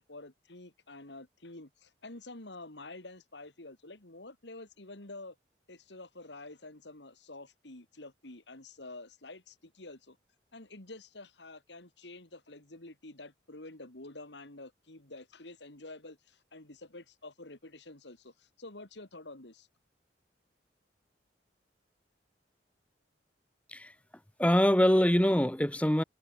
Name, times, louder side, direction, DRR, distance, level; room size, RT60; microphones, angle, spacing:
voice 1, 0.0-5.4 5.7-10.2 10.5-19.7, left 2 dB, 75° left, 3.1 m, -48 dB
voice 2, 24.4-26.0, equal, 10° left, 1.1 m, -24 dB
head